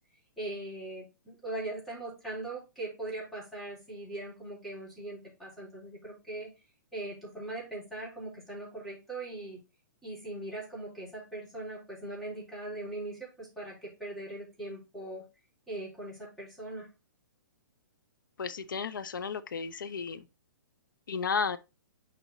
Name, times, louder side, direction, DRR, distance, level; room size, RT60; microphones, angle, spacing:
voice 1, 0.4-6.5 6.9-9.6 10.0-15.3 15.7-16.9, right 2 dB, ahead, 3.7 m, -40 dB
voice 2, 18.4-20.2 21.1-21.6, left 5 dB, 80° left, 0.8 m, -33 dB
6.5 x 4.4 x 3.9 m
hypercardioid pair, 140°, 11 cm